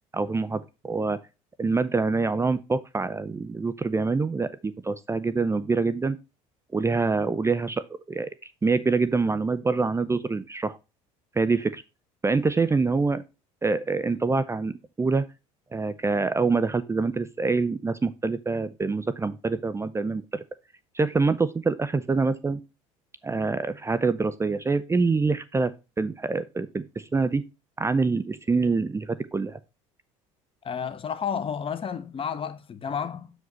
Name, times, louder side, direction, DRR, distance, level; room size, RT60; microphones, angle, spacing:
voice 1, 0.1-1.2 1.6-6.2 6.7-10.8 11.4-11.8 12.2-13.2 13.6-15.3 15.7-20.4 20.9-22.6 23.2-27.4 27.8-29.6, right 4 dB, 15° right, 0.6 m, -25 dB
voice 2, 30.6-33.3, left 7 dB, 35° left, 1.1 m, -31 dB
7.7 x 5.1 x 4.1 m
hypercardioid pair, 80°, 17 cm